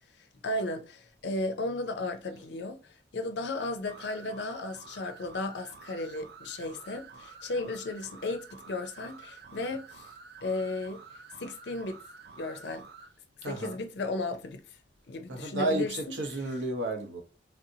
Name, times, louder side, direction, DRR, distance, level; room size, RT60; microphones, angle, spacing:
voice 1, 0.4-10.1 10.4-11.0 11.4-12.0 12.4-12.9 13.4-14.6 15.1-15.9, left 2 dB, 70° left, 0.5 m, -35 dB
sound 1, 3.9-13.1, right 4 dB, 55° right, 0.3 m, -50 dB
voice 2, 13.4-13.8 15.3-17.2, right 1 dB, 85° right, 0.8 m, -32 dB
3.3 x 2.6 x 2.7 m
head